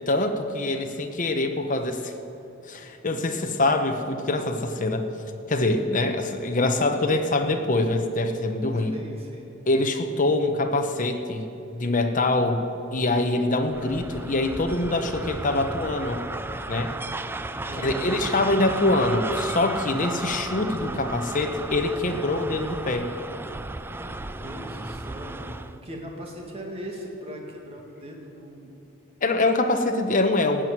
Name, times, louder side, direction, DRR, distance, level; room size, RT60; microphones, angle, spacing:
voice 1, 0.1-2.1 2.7-5.1 5.5-8.9 9.7-11.4 11.7-16.2 16.7-17.0 17.8-23.1 29.2-30.6, left 2 dB, 40° left, 6 dB, 1.0 m, -24 dB
voice 2, 8.5-9.5 17.6-18.0 23.9-25.5 25.8-28.7, equal, 30° right, 0 dB, 2.1 m, -40 dB
sound 1, 13.7-25.8, right 2 dB, 10° right, 0.3 m, -34 dB
17.5 x 6.2 x 9.3 m, 2.8 s
head